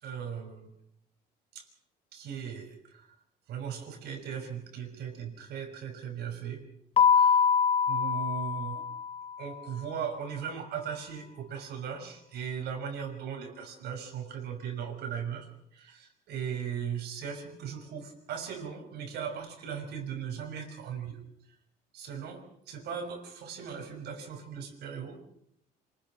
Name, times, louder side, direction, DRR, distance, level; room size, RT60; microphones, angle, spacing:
voice 1, 0.0-0.7 1.5-1.7 2.1-3.1 3.5-6.6 7.0-7.5 7.9-8.9 9.4-21.2 21.5-21.6 21.9-25.2, right 7 dB, 75° right, 4 dB, 6.1 m, -38 dB
Keyboard (musical), 7.0-9.5, left 7 dB, 35° left, 0.9 m, -25 dB
27.0 x 20.0 x 6.3 m, 0.75 s
cardioid pair, 110°, 17 cm